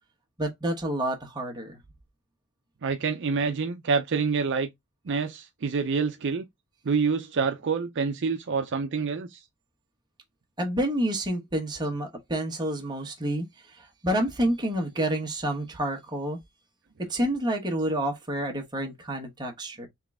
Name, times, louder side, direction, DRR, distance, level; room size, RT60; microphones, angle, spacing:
voice 1, 0.4-1.8 10.6-16.4 17.0-19.9, right 1 dB, 20° right, 1.0 m, -29 dB
voice 2, 2.8-4.7 5.1-6.4 6.8-9.4, right 5 dB, 55° right, 0.5 m, -27 dB
3.7 x 3.1 x 3.5 m
head